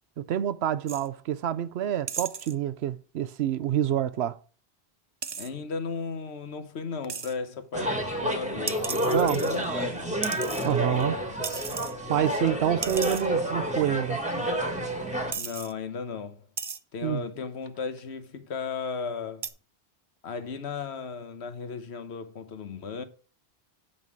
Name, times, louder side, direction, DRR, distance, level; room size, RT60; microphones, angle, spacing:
voice 1, 0.2-4.4 9.1-9.4 10.6-11.2 12.1-14.2 17.0-17.2, right 10 dB, 75° right, 0.9 m, -27 dB
sound 1, 0.9-1.1 2.1-2.5 5.2-5.5 7.1-7.3 8.7-9.8 10.2-11.0 11.4-11.9 12.3-12.4 12.8-13.3 14.2-14.3 14.9-15.0 15.3-15.7 16.6-16.8 17.7-18.0 19.4-19.5, right 5 dB, 40° right, 0.4 m, -35 dB
voice 2, 5.4-10.2 15.3-16.4 16.9-19.5 20.2-23.0, left 5 dB, 80° left, 1.2 m, -35 dB
sound 2, 7.7-15.3, right 1 dB, 5° right, 1.4 m, -29 dB
8.0 x 5.5 x 4.7 m
omnidirectional pair, 1.1 m